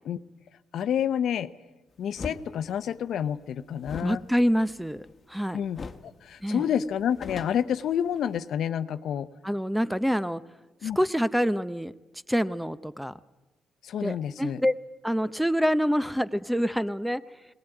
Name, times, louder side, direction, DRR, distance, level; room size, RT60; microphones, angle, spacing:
voice 1, 0.7-1.5 2.0-4.2 5.5-9.3 10.8-11.0 13.8-14.6, left 9 dB, 70° left, 13 dB, 0.8 m, -29 dB
sound 1, 2.1-2.4 3.8-5.4 5.7-6.1 6.4-6.5 6.9-8.4, left 4 dB, 40° left, 1.2 m, -40 dB
voice 2, 4.0-5.6 6.4-6.6 9.4-10.4 10.8-11.9 12.3-13.1 14.0-14.7 15.0-17.2, equal, ahead, 15 dB, 0.6 m, -26 dB
19.0 x 19.0 x 9.1 m, 1.1 s
cardioid pair, 90°, 0 cm